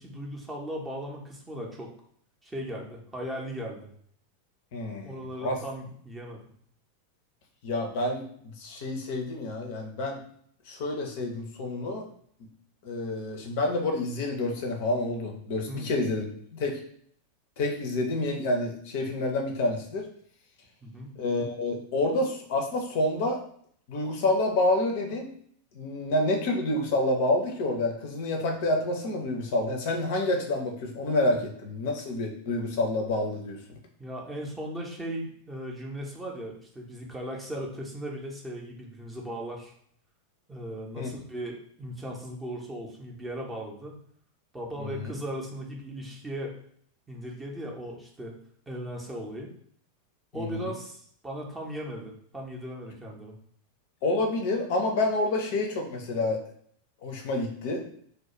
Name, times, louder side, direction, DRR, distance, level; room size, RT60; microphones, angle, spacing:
voice 1, 0.0-1.9 2.4-3.9 5.0-6.4 15.7-15.9 20.8-21.1 34.0-39.7 40.5-44.0 44.5-46.5 47.1-48.4 48.7-49.5 50.3-53.3, equal, 10° right, -1 dB, 0.6 m, -37 dB
voice 2, 4.7-5.6 7.6-10.2 10.7-12.1 12.8-16.3 16.5-16.8 17.6-20.1 21.2-23.4 23.9-25.3 25.7-33.6 41.0-41.1 44.8-45.1 50.3-50.7 54.0-56.4 57.0-57.8, left 2 dB, 50° left, 2 dB, 0.5 m, -28 dB
2.3 x 2.1 x 2.9 m, 0.62 s
figure-of-eight pair, 90°, 0 cm